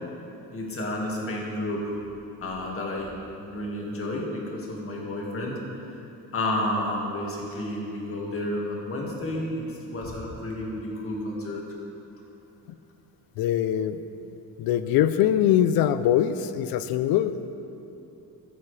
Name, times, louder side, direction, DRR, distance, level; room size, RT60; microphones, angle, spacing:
voice 1, 0.5-1.9 2.4-3.1 3.4-5.6 6.3-11.6, left 1 dB, 40° left, -2 dB, 1.9 m, -31 dB
voice 2, 13.4-17.6, left 10 dB, 80° left, 12 dB, 0.5 m, -23 dB
14.5 x 7.0 x 3.3 m, 2.9 s
cardioid pair, 110°, 35 cm